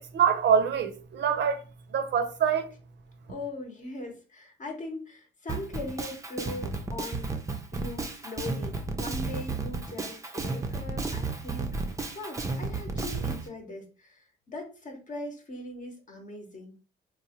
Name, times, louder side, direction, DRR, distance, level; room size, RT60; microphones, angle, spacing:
voice 1, 0.1-1.6 1.9-2.7, right 7 dB, 60° right, 0.6 m, -25 dB
voice 2, 3.3-7.4 7.7-16.7, left 2 dB, 40° left, 0.8 m, -40 dB
Drum kit, 5.5-13.4, right 3 dB, 15° right, 0.5 m, -32 dB
3.0 x 2.1 x 2.8 m
cardioid pair, 90°, 20 cm